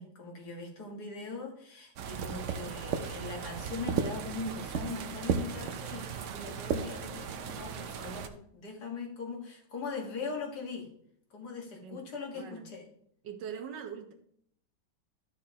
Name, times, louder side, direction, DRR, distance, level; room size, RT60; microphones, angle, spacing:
voice 1, 0.0-10.9 11.3-12.8, left 4 dB, 65° left, 0 dB, 2.2 m, -40 dB
sound 1, 2.0-8.3, right 7 dB, 65° right, 0.7 m, -35 dB
voice 2, 12.3-12.7 13.2-14.1, right 7 dB, 80° right, 4 dB, 1.6 m, -42 dB
11.5 x 6.5 x 2.9 m, 0.68 s
omnidirectional pair, 1.9 m